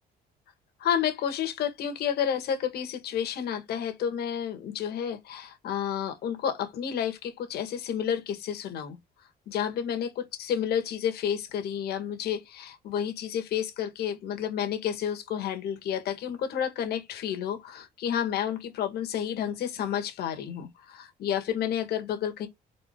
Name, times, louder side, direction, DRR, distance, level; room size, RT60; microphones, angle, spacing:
voice 1, 0.8-9.0 9.5-22.5, left 9 dB, 70° left, 1.6 m, -30 dB
4.3 x 4.2 x 2.2 m
cardioid pair, 110°, 17 cm